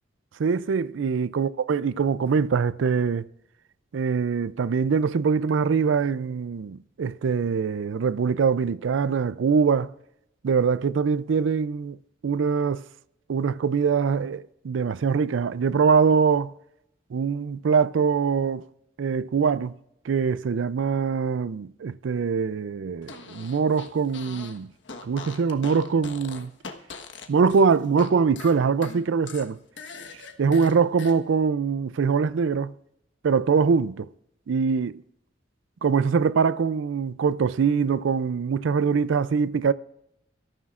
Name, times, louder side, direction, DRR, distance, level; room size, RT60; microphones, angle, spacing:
voice 1, 0.4-3.3 3.9-9.9 10.4-12.0 12.2-12.9 13.3-16.5 17.1-18.7 19.0-19.7 20.0-24.7 25.0-26.5 27.3-29.6 30.4-32.7 33.2-34.1 34.5-35.0 35.8-39.7, right 5 dB, 85° right, 0.4 m, -23 dB
Fart, 23.0-24.6 24.8-28.1 28.4-31.2, left 4 dB, 70° left, 1.3 m, -41 dB
24.5 x 13.5 x 2.5 m
head